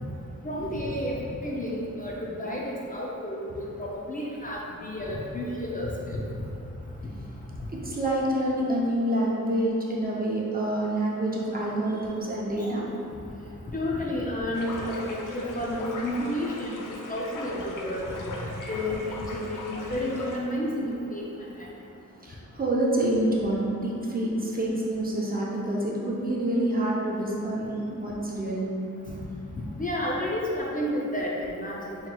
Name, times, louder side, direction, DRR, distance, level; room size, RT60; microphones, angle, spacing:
voice 1, 0.4-6.2 12.6-12.7 13.7-16.8 17.1-18.2 18.6-21.2 29.8-32.0, left 1 dB, 25° left, -4 dB, 0.4 m, -31 dB
voice 2, 7.8-12.8 22.2-28.7, right 1 dB, 30° right, -4 dB, 0.6 m, -27 dB
sound 1, 14.5-20.4, left 2 dB, 75° left, 0.5 m, -39 dB
5.5 x 2.9 x 2.2 m, 2.7 s
wide cardioid pair, 125°, 32 cm